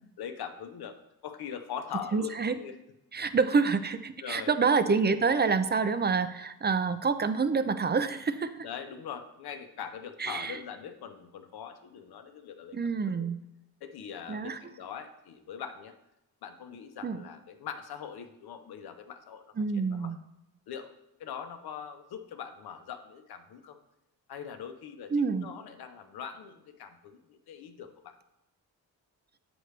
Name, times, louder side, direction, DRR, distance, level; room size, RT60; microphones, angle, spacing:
voice 1, 0.2-1.0 1.2-2.8 4.2-4.5 8.6-12.8 13.1-13.3 13.8-15.9 16.4-20.1 20.7-20.9 21.2-23.8 24.3-28.1, left 8 dB, 70° left, 7 dB, 0.9 m, -42 dB
voice 2, 2.1-2.6 3.1-8.6 10.2-10.6 12.7-13.4 14.3-14.6 17.0-17.2 19.6-20.2 25.1-25.5, right 5 dB, 25° right, 11 dB, 0.5 m, -27 dB
7.9 x 6.1 x 3.3 m, 0.86 s
cardioid pair, 75°, 39 cm